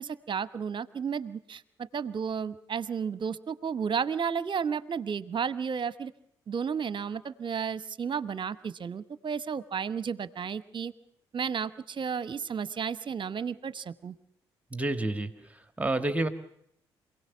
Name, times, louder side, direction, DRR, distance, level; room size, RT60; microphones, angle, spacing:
voice 1, 0.0-6.1 6.5-10.9 11.3-14.1, right 6 dB, 40° right, 17 dB, 1.0 m, -33 dB
voice 2, 14.7-16.3, right 2 dB, 10° right, 9 dB, 1.8 m, -30 dB
27.5 x 17.5 x 7.2 m, 0.74 s
figure-of-eight pair, 45°, 13 cm